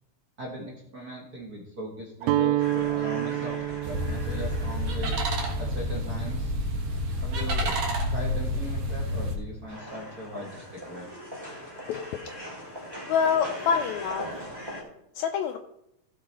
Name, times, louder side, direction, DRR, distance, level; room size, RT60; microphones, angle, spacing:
voice 1, 0.4-5.2 5.6-6.5 7.2-7.8 8.1-11.1, equal, 40° right, -2 dB, 1.6 m, -39 dB
Guitar, 2.2-8.3, right 14 dB, 80° right, 1.8 m, -31 dB
sound 1, 2.6-6.0 6.5-6.6 6.9-9.4 9.7-14.8, equal, 10° right, 2.5 m, -41 dB
sound 2, 3.8-9.3, equal, 60° right, 2.6 m, -29 dB
voice 2, 13.1-14.3 15.2-15.6, left 7 dB, 80° left, 6 dB, 1.8 m, -25 dB
15.5 x 5.6 x 4.2 m, 0.80 s
omnidirectional pair, 3.5 m